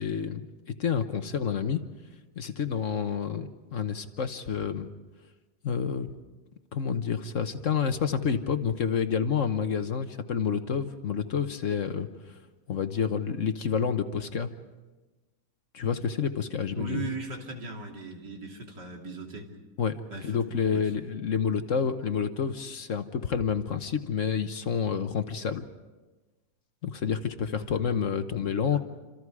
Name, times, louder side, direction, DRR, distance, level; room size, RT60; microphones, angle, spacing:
voice 1, 0.0-1.8 2.4-4.9 5.6-6.1 6.7-12.4 12.7-14.5 15.7-17.1 19.8-25.7 26.8-28.8, left 7 dB, 55° left, 9 dB, 1.3 m, -29 dB
voice 2, 16.7-19.5 20.1-20.3 20.7-20.8 27.6-27.7 28.7-28.8, right 3 dB, 85° right, 1 dB, 3.5 m, -38 dB
28.0 x 27.0 x 4.8 m, 1.2 s
omnidirectional pair, 1.8 m